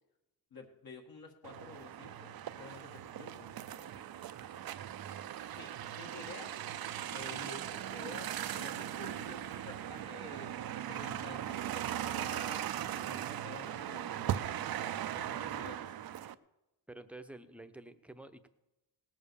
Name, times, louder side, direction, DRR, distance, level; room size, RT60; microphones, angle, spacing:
voice 1, 0.5-4.1 5.5-6.6 7.1-10.5 10.9-14.3 15.1-16.0, left 3 dB, 55° left, 1 dB, 1.8 m, -51 dB
sound 1, 1.4-16.3, right 11 dB, 60° right, 0.6 m, -39 dB
voice 2, 16.9-18.5, right 2 dB, 5° right, 9 dB, 0.8 m, -49 dB
18.5 x 7.4 x 6.9 m, 0.95 s
cardioid pair, 115°, 42 cm